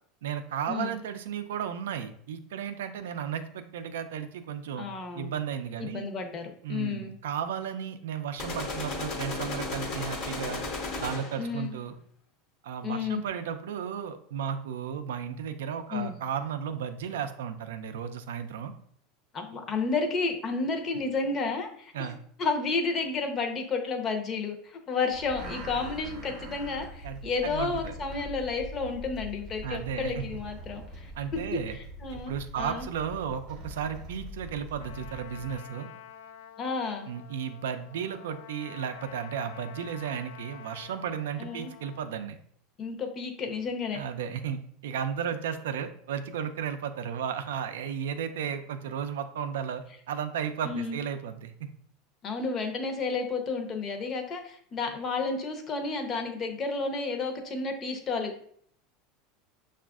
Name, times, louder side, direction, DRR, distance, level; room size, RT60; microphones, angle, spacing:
voice 1, 0.2-4.9 5.1-6.1 6.6-10.6 11.0-12.0 12.6-18.7 21.9-22.2 27.0-27.9 29.6-30.2 31.2-31.8 32.1-35.9 37.1-42.4 43.9-51.7, right 8 dB, 90° right, 9 dB, 0.3 m, -34 dB
voice 2, 4.8-5.3 5.8-7.2 11.4-11.7 12.8-13.2 15.9-16.2 19.3-21.9 22.4-31.1 31.7-32.9 36.6-37.1 41.4-41.7 42.8-44.0 50.6-51.0 52.2-58.4, left 4 dB, 35° left, 4 dB, 0.7 m, -31 dB
sound 1, 8.4-11.5, left 3 dB, 60° left, 0.9 m, -34 dB
sound 2, 25.1-35.6, equal, 60° right, 0.7 m, -43 dB
Trumpet, 34.8-42.1, left 9 dB, 85° left, 0.4 m, -48 dB
5.9 x 2.4 x 2.3 m, 0.63 s
supercardioid pair, 115°, 0 cm